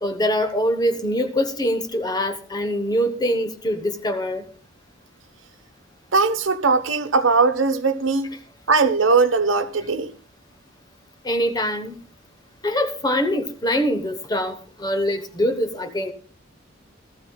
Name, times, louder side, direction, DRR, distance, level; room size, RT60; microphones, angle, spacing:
voice 1, 0.0-4.5 11.2-12.0 12.6-16.1, equal, 20° left, 1.0 m, -23 dB
voice 2, 6.1-8.3 8.7-10.1, right 4 dB, 75° right, 1.1 m, -19 dB
18.5 x 13.5 x 2.3 m
head